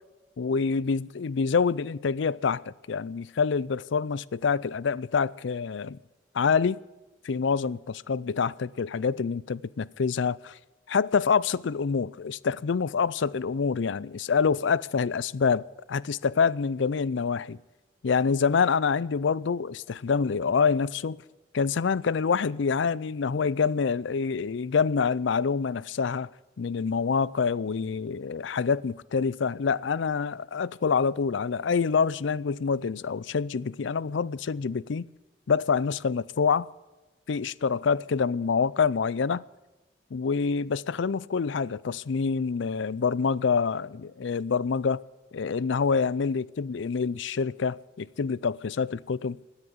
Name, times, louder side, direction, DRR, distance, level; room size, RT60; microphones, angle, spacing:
voice 1, 0.4-2.6 2.9-6.0 6.3-6.8 7.2-10.6 10.9-17.6 18.0-21.2 21.5-26.3 26.6-35.1 35.5-36.7 37.3-39.4 40.1-45.0 45.3-49.4, left 5 dB, 65° left, 0.4 m, -26 dB
17.0 x 9.9 x 7.1 m
head